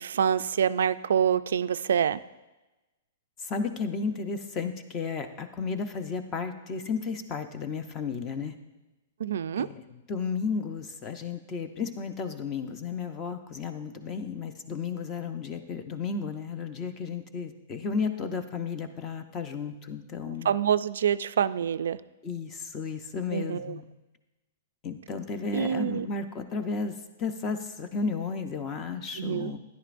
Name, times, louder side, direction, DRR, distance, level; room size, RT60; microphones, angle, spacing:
voice 1, 0.0-2.2 9.2-9.7 20.5-22.0 23.3-23.7 25.5-26.1 29.2-29.5, right 8 dB, 80° right, 14 dB, 0.3 m, -26 dB
voice 2, 3.4-8.6 9.6-20.6 22.2-23.8 24.8-29.6, left 5 dB, 20° left, 9 dB, 0.6 m, -33 dB
12.0 x 10.5 x 2.5 m, 1.1 s
hypercardioid pair, 165°, 0 cm